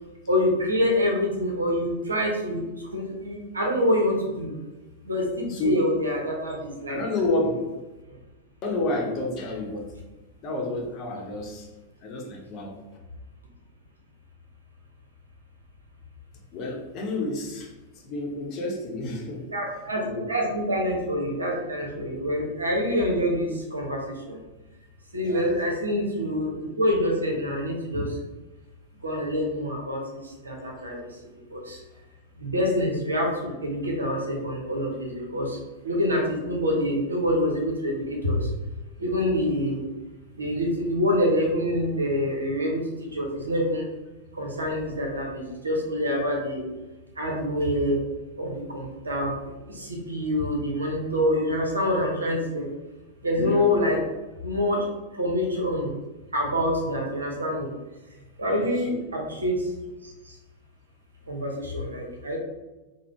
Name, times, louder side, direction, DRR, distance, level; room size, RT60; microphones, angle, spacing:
voice 1, 0.3-2.6 2.9-4.5 5.1-7.0 19.5-20.0 20.3-24.0 24.3-24.4 25.1-28.1 29.0-30.0 30.4-31.0 31.5-31.8 32.4-35.6 35.8-38.4 39.0-39.8 40.4-42.8 43.1-43.8 44.4-46.6 47.2-48.0 48.4-49.3 49.8-52.7 53.2-54.0 54.4-54.8 55.2-55.9 56.3-57.7 58.4-59.6 61.3-62.4, left 1 dB, 75° right, 0 dB, 0.8 m, -26 dB
voice 2, 6.9-7.7 8.6-9.9 10.4-11.7 12.0-12.8 16.5-19.5 20.0-20.3 25.2-25.5 27.9-28.1 53.3-53.7 58.5-58.9, left 2 dB, 35° left, -1 dB, 0.7 m, -30 dB
3.6 x 2.1 x 3.2 m, 1.1 s
figure-of-eight pair, 95°, 0 cm